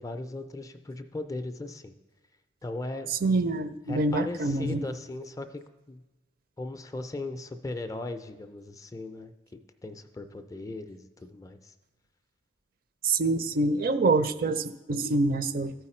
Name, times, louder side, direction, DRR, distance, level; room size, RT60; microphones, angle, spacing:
voice 1, 0.0-1.9 2.6-3.1 3.9-5.6 5.9-6.0 6.6-9.3 9.8-11.7, left 2 dB, 20° left, 8 dB, 0.4 m, -38 dB
voice 2, 3.1-4.8 13.0-15.7, right 3 dB, 50° right, 11 dB, 0.5 m, -26 dB
14.0 x 4.8 x 4.3 m, 1.1 s
head